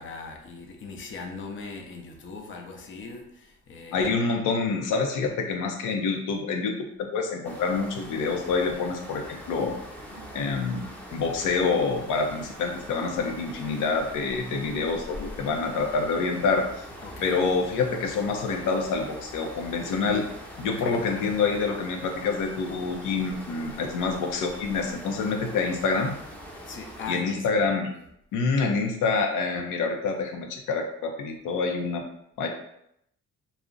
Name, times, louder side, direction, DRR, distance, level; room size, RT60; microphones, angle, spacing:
voice 1, 0.0-4.1 17.0-17.4 20.6-21.1 26.7-27.6, left 4 dB, 40° left, 0.6 m, -40 dB
voice 2, 3.9-6.7 7.0-9.7 10.3-10.9 11.1-16.8 17.2-20.2 20.6-26.1 27.1-27.9 28.3-32.0 32.4-32.5, left 4 dB, 85° left, 0.5 m, -27 dB
sound 1, 7.4-27.1, equal, 5° left, 0.7 m, -43 dB
2.4 x 2.0 x 3.6 m
cardioid pair, 90°, 30 cm